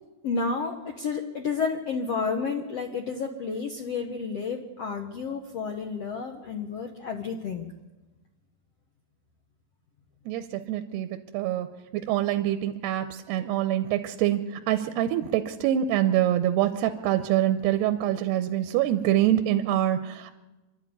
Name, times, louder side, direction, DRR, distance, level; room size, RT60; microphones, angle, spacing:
voice 1, 0.2-7.7, left 5 dB, 65° left, 3 dB, 1.6 m, -31 dB
voice 2, 10.3-11.1 11.3-11.7 11.9-20.3, right 12 dB, 80° right, 8 dB, 2.9 m, -25 dB
25.5 x 12.5 x 9.5 m, 1.1 s
omnidirectional pair, 4.7 m